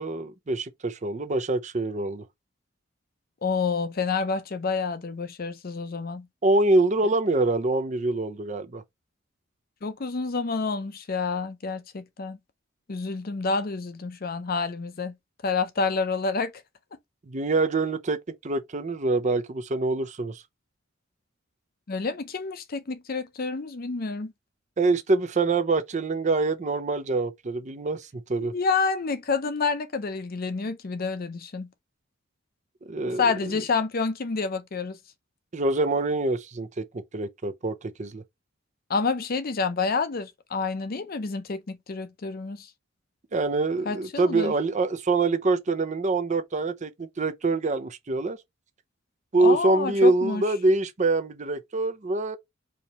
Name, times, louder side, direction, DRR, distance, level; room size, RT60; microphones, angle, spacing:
voice 1, 0.0-2.2 6.4-8.8 17.3-18.2 18.4-20.4 24.8-28.5 32.9-33.3 35.5-38.2 43.3-48.4 49.3-52.4, right 2 dB, 35° right, 0.6 m, -25 dB
voice 2, 3.4-6.3 9.8-12.4 12.9-15.1 15.4-16.5 21.9-24.3 28.4-31.7 33.0-35.0 38.9-42.7 43.9-44.5 49.4-50.4, left 4 dB, 50° left, 0.6 m, -28 dB
4.9 x 2.8 x 3.0 m
head